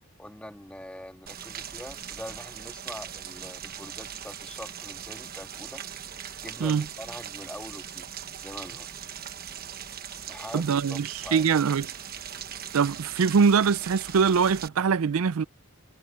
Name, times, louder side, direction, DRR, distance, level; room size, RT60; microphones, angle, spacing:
voice 1, 0.2-5.8 6.4-8.1 8.4-8.9 10.3-11.5, left 1 dB, 5° left, 2.0 m, -43 dB
Rain, 1.3-14.7, right 9 dB, 45° right, 1.1 m, -40 dB
voice 2, 10.5-11.9 12.7-15.4, right 6 dB, 80° right, 0.4 m, -23 dB
head